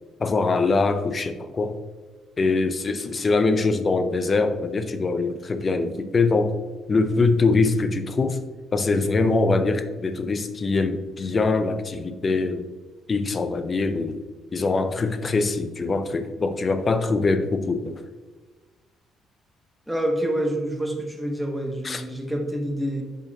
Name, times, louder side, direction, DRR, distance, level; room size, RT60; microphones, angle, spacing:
voice 1, 0.2-1.8 2.4-6.6 6.9-8.4 8.7-12.7 13.1-14.2 14.5-18.0 21.8-22.0, left 3 dB, 35° left, 10 dB, 0.5 m, -23 dB
voice 2, 19.9-23.0, right 1 dB, 5° right, 1 dB, 1.1 m, -27 dB
6.5 x 5.2 x 2.9 m, 1.3 s
cardioid pair, 100°, 0 cm